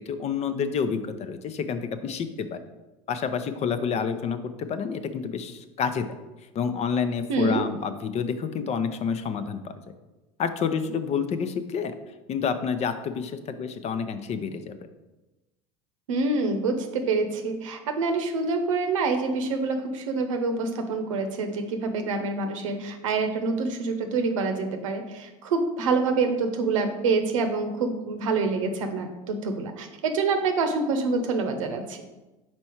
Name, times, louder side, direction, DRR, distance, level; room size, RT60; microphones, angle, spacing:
voice 1, 0.1-2.6 3.1-6.1 6.5-9.7 10.4-11.9 12.3-14.7, left 6 dB, 40° left, 10 dB, 0.7 m, -29 dB
voice 2, 7.3-7.6 16.1-32.0, right 3 dB, 85° right, 7 dB, 0.9 m, -26 dB
5.3 x 4.4 x 4.6 m, 1.1 s
hypercardioid pair, 90°, 16 cm